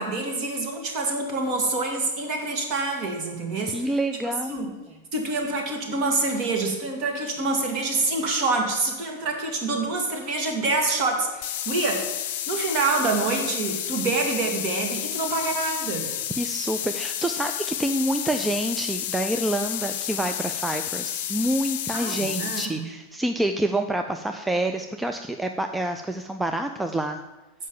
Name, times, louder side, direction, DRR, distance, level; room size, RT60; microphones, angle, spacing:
voice 1, 0.0-3.9 4.2-4.7 5.1-12.1 12.5-16.1 21.9-22.9, right 3 dB, 40° right, 2 dB, 2.0 m, -26 dB
voice 2, 3.7-4.7 16.4-27.2, right 1 dB, 5° right, 6 dB, 0.4 m, -27 dB
sound 1, 11.4-22.7, left 11 dB, 45° left, 0.6 m, -31 dB
7.4 x 5.4 x 7.3 m, 1.2 s
figure-of-eight pair, 90°, 0 cm